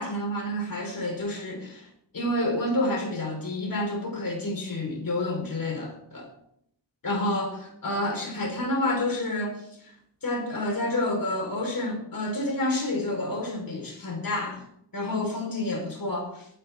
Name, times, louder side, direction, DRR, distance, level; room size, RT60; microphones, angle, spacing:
voice 1, 0.0-1.9 2.1-6.3 7.0-9.7 10.2-14.6 14.9-16.5, left 1 dB, 50° left, 1 dB, 4.5 m, -29 dB
23.0 x 10.5 x 3.7 m, 0.71 s
wide cardioid pair, 140°, 43 cm